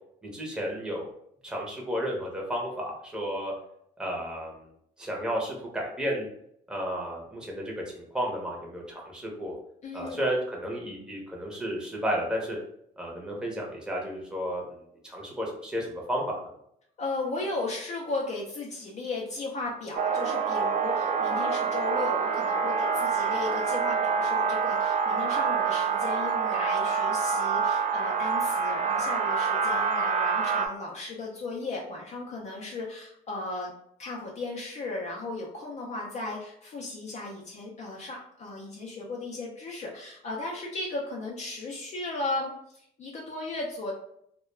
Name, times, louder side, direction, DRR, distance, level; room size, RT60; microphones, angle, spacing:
voice 1, 0.2-1.0 1.4-3.5 4.0-4.6 5.0-6.3 6.7-9.5 9.9-12.6 13.0-14.6 15.0-16.5, equal, 5° right, -2 dB, 0.7 m, -32 dB
voice 2, 9.8-10.3 17.0-33.7 34.0-43.9, left 2 dB, 45° left, -2 dB, 0.5 m, -35 dB
sound 1, 20.0-30.7, right 5 dB, 45° right, 0.4 m, -26 dB
2.2 x 2.2 x 3.1 m, 0.72 s
cardioid pair, 110°, 17 cm